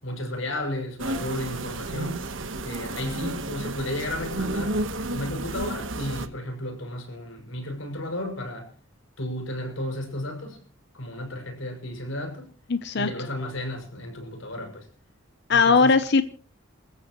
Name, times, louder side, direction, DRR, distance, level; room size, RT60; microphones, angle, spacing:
voice 1, 0.0-2.2 2.6-4.8 5.1-8.7 9.2-10.6 10.9-12.5 12.9-14.9 15.5-15.9, left 1 dB, 80° left, 6.4 m, -33 dB
sound 1, 1.0-6.3, right 2 dB, 70° right, 1.4 m, -31 dB
voice 2, 12.7-13.1 15.5-16.2, left 4 dB, 60° left, 0.8 m, -19 dB
27.5 x 14.5 x 3.2 m
head